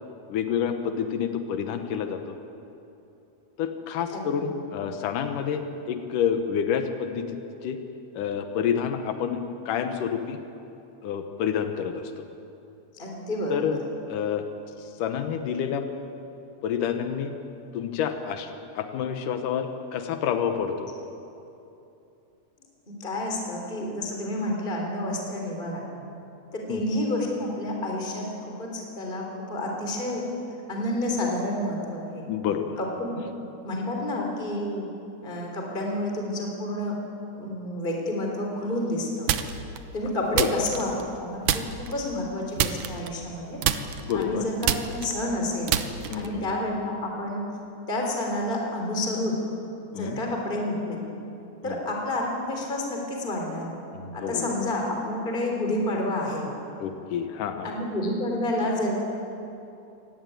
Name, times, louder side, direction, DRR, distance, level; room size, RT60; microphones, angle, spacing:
voice 1, 0.3-2.4 3.6-7.2 7.6-7.8 8.2-10.4 11.0-12.1 13.5-13.8 14.1-14.5 14.8-15.8 16.6-17.3 17.7-18.5 18.8-20.9 26.7-26.8 32.3-32.8 40.4-40.5 44.0-44.5 46.1-46.5 49.9-50.2 51.6-51.8 53.9-54.5 56.8-57.7, left 8 dB, 90° left, 6 dB, 2.7 m, -28 dB
voice 2, 4.1-4.5 13.0-13.8 22.9-25.8 26.5-29.2 29.5-30.2 30.7-32.2 32.8-33.2 33.6-34.9 35.2-37.0 37.3-39.3 39.9-40.9 41.2-43.6 44.1-45.7 46.1-47.4 47.9-49.4 49.9-51.0 51.6-53.7 54.1-56.5 57.6-59.0, left 1 dB, 15° left, 0 dB, 3.5 m, -29 dB
sound 1, 39.3-39.8 40.3-41.2 41.5-42.0 42.6-43.4 43.6-46.4, right 9 dB, 75° right, 2.3 m, -27 dB
25.0 x 18.5 x 9.3 m, 2.8 s
omnidirectional pair, 3.6 m